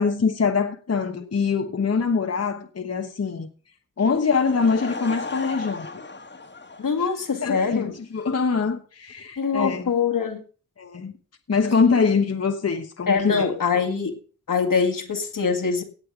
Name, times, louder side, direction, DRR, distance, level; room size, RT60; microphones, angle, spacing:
voice 1, 0.0-3.5 4.0-5.9 7.0-7.1 7.4-9.9 10.8-11.1 11.5-13.5, left 5 dB, 50° left, 1.2 m, -23 dB
Laughter / Crowd, 4.2-7.7, left 3 dB, 35° left, 1.7 m, -36 dB
voice 2, 6.8-8.0 9.4-10.4 13.1-14.2 14.5-15.8, left 5 dB, 80° left, 2.1 m, -23 dB
17.5 x 7.8 x 5.0 m
wide cardioid pair, 90°, 32 cm